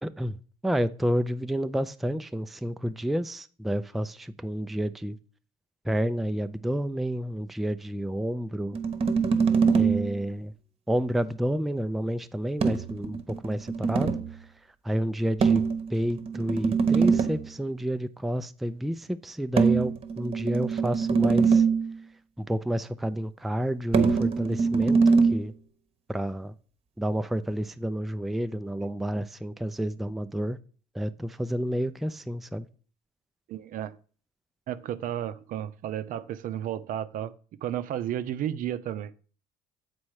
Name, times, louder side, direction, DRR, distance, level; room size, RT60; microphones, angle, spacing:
voice 1, 0.0-0.4 0.6-5.2 5.9-8.8 9.7-10.5 10.9-14.1 14.8-15.6 15.9-21.6 22.4-25.0 25.3-25.5 26.1-26.5 27.0-30.6 30.9-32.7, equal, ahead, 0.4 m, -30 dB
sound 1, 8.7-10.1 12.6-14.3 15.4-17.4 19.6-22.0 23.9-25.4, right 5 dB, 40° right, 1.0 m, -23 dB
voice 2, 33.5-34.0 34.7-37.3 37.6-39.1, right 11 dB, 60° right, 0.6 m, -32 dB
7.5 x 4.2 x 4.8 m
supercardioid pair, 85°, 16 cm